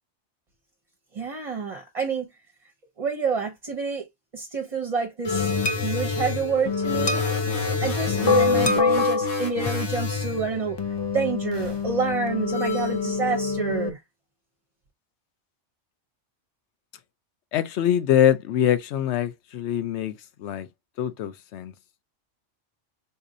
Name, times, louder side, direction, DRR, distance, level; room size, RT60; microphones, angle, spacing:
voice 1, 1.1-2.3 3.0-4.0 4.3-7.2 7.8-10.8 11.1-14.0, right 5 dB, 35° right, 0.7 m, -28 dB
sound 1, 5.2-13.9, left 5 dB, 35° left, 0.4 m, -25 dB
sound 2, 7.1-10.0, left 1 dB, 85° left, 1.7 m, -33 dB
voice 2, 17.5-20.1 20.4-20.7 21.0-21.7, left 10 dB, 70° left, 0.8 m, -23 dB
4.0 x 2.7 x 2.5 m
omnidirectional pair, 1.2 m